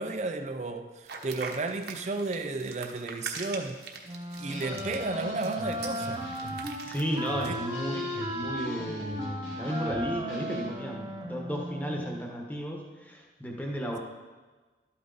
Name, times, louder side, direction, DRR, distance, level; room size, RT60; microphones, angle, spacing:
voice 1, 0.0-3.8 4.4-6.2 7.5-7.6, right 3 dB, 40° right, 0.5 m, -33 dB
sound 1, 1.1-7.6, right 5 dB, 60° right, 1.2 m, -42 dB
Wind instrument woodwind instrument, 4.0-12.2, equal, 20° right, 1.0 m, -36 dB
sound 2, 4.5-10.7, left 1 dB, 90° left, 3.2 m, -43 dB
voice 2, 6.8-14.0, equal, 10° left, 1.3 m, -34 dB
12.5 x 8.6 x 4.0 m
head